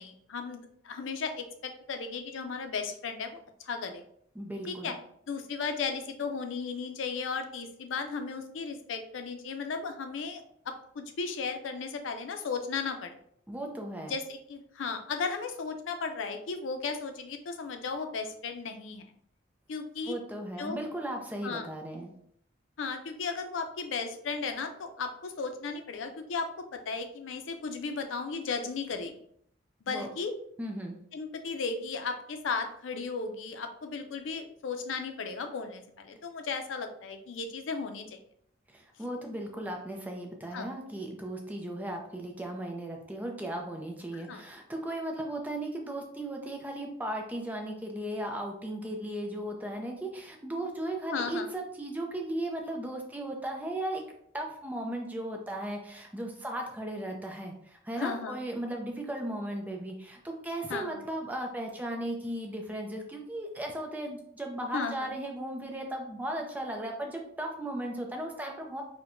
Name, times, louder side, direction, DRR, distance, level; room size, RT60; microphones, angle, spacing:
voice 1, 0.0-3.4 3.6-4.0 4.7-4.9 5.3-13.2 14.1-19.0 19.7-20.2 20.6-20.8 21.4-21.7 22.8-29.1 29.8-30.3 31.1-38.2 40.5-40.7 44.1-44.4 51.1-51.5 58.0-58.4 60.7-61.0 64.7-65.2, left 4 dB, 90° left, 7 dB, 0.4 m, -35 dB
voice 2, 4.4-4.9 13.5-14.1 20.1-22.1 29.9-30.1 30.6-31.0 38.7-54.0 54.3-68.8, right 1 dB, 10° right, 2 dB, 0.4 m, -36 dB
4.4 x 2.1 x 2.5 m, 0.68 s
head